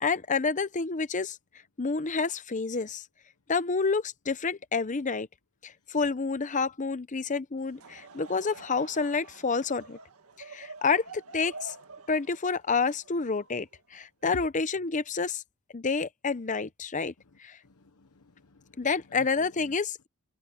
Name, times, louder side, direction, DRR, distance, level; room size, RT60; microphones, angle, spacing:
voice 1, 0.0-1.4 1.8-3.0 3.5-5.3 5.6-10.0 10.4-11.7 12.1-15.4 15.7-17.1 17.4-17.6 18.8-20.1, left 4 dB, 35° left, 0.7 m, -29 dB
Laughter / Crowd, 7.6-14.0, right 3 dB, 80° right, 1.8 m, -48 dB
voice 2, 17.6-19.7, left 4 dB, 85° left, 1.1 m, -48 dB
head